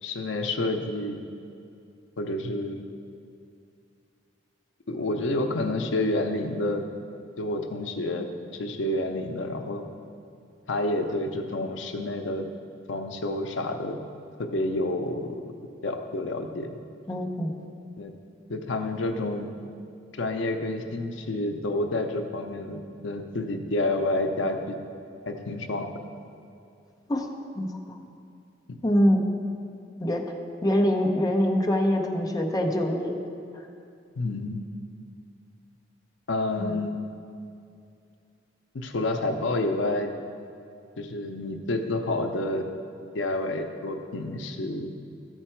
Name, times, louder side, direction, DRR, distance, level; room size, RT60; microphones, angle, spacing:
voice 1, 0.0-1.2 2.2-2.8 4.9-6.8 7.4-9.8 10.7-12.5 12.9-14.0 14.4-15.5 15.8-16.8 18.0-18.1 18.5-19.5 20.2-24.8 25.3-25.9 28.7-28.8 34.2-34.6 36.3-37.0 38.7-40.1 41.0-42.7 43.1-44.9, left 2 dB, 90° left, 6 dB, 0.6 m, -29 dB
voice 2, 17.1-17.5 27.1-27.3 27.5-28.0 28.8-29.3 30.0-30.2 30.6-33.1 33.5-33.6 36.6-36.8, equal, 20° left, 1 dB, 0.7 m, -24 dB
12.5 x 4.5 x 4.4 m, 2.5 s
head